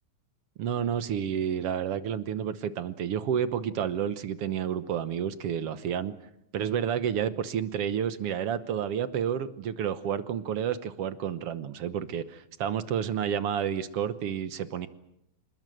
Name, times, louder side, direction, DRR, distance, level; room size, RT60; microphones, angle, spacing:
voice 1, 0.6-6.1 6.5-14.9, right 8 dB, 60° right, 12 dB, 1.7 m, -30 dB
26.5 x 21.0 x 7.8 m, 0.79 s
omnidirectional pair, 3.5 m